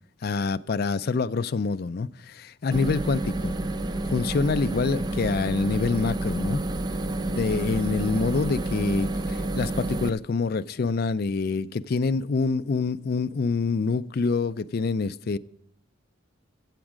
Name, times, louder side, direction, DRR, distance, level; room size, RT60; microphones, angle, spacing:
voice 1, 0.2-3.5 4.1-6.6 7.2-15.4, left 4 dB, 50° left, 0.4 m, -26 dB
sound 1, 2.7-10.1, right 2 dB, 20° right, 0.4 m, -29 dB
15.0 x 7.3 x 5.0 m
head